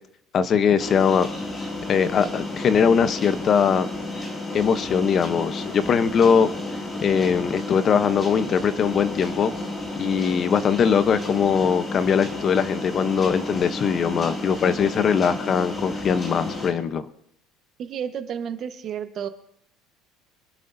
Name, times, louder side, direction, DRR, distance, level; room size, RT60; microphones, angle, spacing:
voice 1, 0.3-1.3 1.9-3.9 4.5-6.5 7.0-9.5 9.9-17.1, left 7 dB, 35° left, 12 dB, 0.8 m, -21 dB
sound 1, 0.8-16.7, left 2 dB, 20° left, 2.5 m, -32 dB
voice 2, 17.8-19.3, right 8 dB, 40° right, 8 dB, 1.2 m, -31 dB
25.5 x 10.5 x 2.7 m, 0.75 s
cardioid pair, 140°, 0 cm